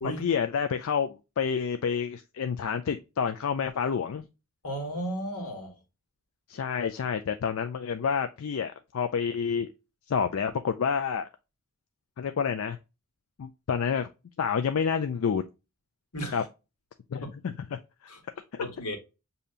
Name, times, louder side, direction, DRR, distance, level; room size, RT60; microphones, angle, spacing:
voice 1, 0.2-4.3 6.5-9.7 10.1-11.3 12.2-12.8 13.4-14.1 14.4-15.4 16.3-16.4 17.1-18.1 18.5-18.6, left 6 dB, 65° left, 0.4 m, -29 dB
voice 2, 4.6-5.8 16.1-16.4 18.1-18.2 18.6-19.0, equal, 80° left, 1.5 m, -34 dB
6.6 x 2.8 x 2.4 m
head